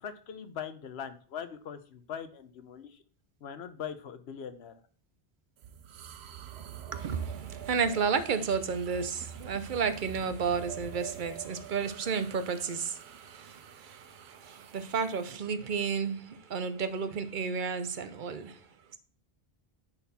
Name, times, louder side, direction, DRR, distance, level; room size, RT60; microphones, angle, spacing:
voice 1, 0.0-3.0 3.4-4.7, left 8 dB, 85° left, 1.0 m, -41 dB
sound 1, 5.6-15.4, right 9 dB, 80° right, 0.9 m, -46 dB
voice 2, 6.9-18.6, right 6 dB, 55° right, 0.8 m, -32 dB
9.9 x 4.2 x 4.1 m
omnidirectional pair, 1.1 m